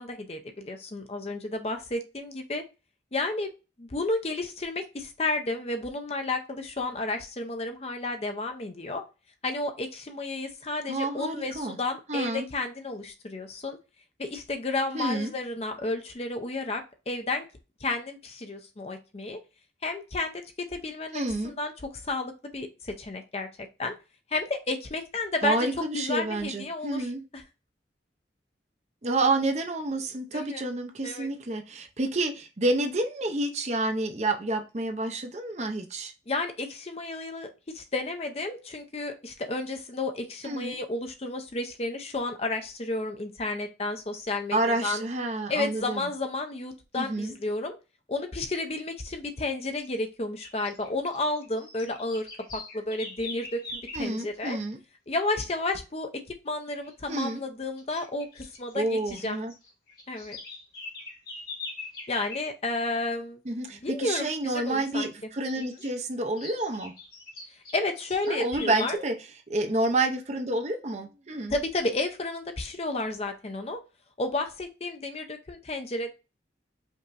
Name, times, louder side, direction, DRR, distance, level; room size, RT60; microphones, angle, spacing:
voice 1, 0.0-2.6 3.1-3.5 3.8-9.0 9.4-13.8 14.2-17.4 17.8-19.4 19.8-20.3 20.7-21.7 22.0-23.5 23.8-24.0 24.3-25.6 25.9-27.1 27.3-27.4 30.3-30.6 31.0-31.3 36.3-45.0 45.5-47.8 48.1-54.6 55.1-56.1 56.4-59.4 60.1-60.4 62.1-63.4 63.8-65.1 67.7-69.0 69.7-69.8 71.5-73.8 74.2-76.1, left 2 dB, 35° left, 6 dB, 0.6 m, -32 dB
voice 2, 10.9-11.8 12.1-12.5 14.9-15.3 21.1-21.5 25.4-27.2 29.0-36.1 40.4-40.8 44.5-46.1 47.0-47.4 53.9-54.8 57.1-57.4 58.7-59.5 63.4-66.9 68.3-69.1 69.5-71.5, right 2 dB, 35° right, 5 dB, 0.6 m, -29 dB
sound 1, 49.8-49.9 50.4-54.1 56.7-56.9 57.2-57.3 57.8-59.2 59.5-62.4 65.4-65.9 66.4-68.9, left 3 dB, 55° left, 2.1 m, -42 dB
5.3 x 2.9 x 2.5 m, 0.29 s
head